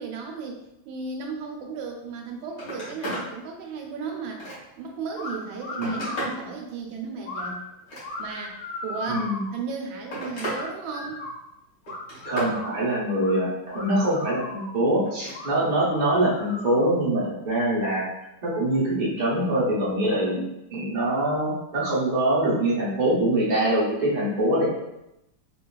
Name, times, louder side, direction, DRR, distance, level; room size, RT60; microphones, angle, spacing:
voice 1, 0.0-4.4 4.8-7.6 8.2-11.3, right 4 dB, 80° right, 2 dB, 1.3 m, -35 dB
Telephone, 2.1-2.2 2.5-3.3 3.8-4.9 5.4-6.4 7.7-8.5 9.5-10.6 11.0-11.4 11.9-12.6 15.0-15.4 16.8-16.9, right 1 dB, 55° left, 1.5 m, -35 dB
sound 1, 5.1-5.3 5.6-6.4 7.2-7.5 8.0-9.5 10.5-11.3 11.8-12.8 13.2-13.3 13.7-14.7 15.3-15.5 15.9-17.0, left 2 dB, 75° left, 1.5 m, -37 dB
voice 2, 9.1-9.4 12.2-18.1 18.4-20.4 20.7-24.7, right 1 dB, 65° right, -6 dB, 0.4 m, -24 dB
3.8 x 2.3 x 2.2 m, 0.87 s
omnidirectional pair, 2.2 m